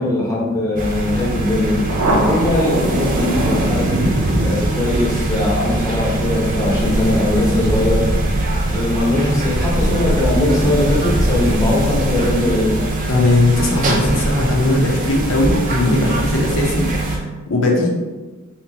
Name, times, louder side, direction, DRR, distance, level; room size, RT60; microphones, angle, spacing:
voice 1, 0.0-4.1 4.4-8.1 8.7-12.7, left 1 dB, 15° left, -5 dB, 0.8 m, -20 dB
sound 1, 0.8-17.2, right 2 dB, 40° right, 0.5 m, -22 dB
Thunder, 1.9-8.9, right 1 dB, 90° right, 0.6 m, -23 dB
voice 2, 13.1-17.9, left 2 dB, 70° left, -1 dB, 0.7 m, -18 dB
3.4 x 2.9 x 2.8 m, 1.3 s
head